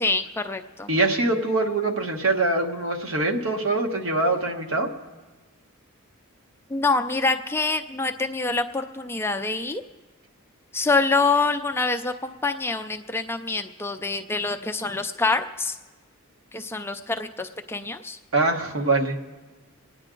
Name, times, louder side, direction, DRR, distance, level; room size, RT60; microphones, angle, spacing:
voice 1, 0.0-0.9 6.7-9.8 10.7-15.8 16.5-18.2, left 3 dB, 10° left, 7 dB, 0.4 m, -26 dB
voice 2, 0.9-4.9 18.3-19.2, right 2 dB, 65° right, 2 dB, 1.3 m, -23 dB
27.0 x 9.8 x 3.8 m, 1.2 s
head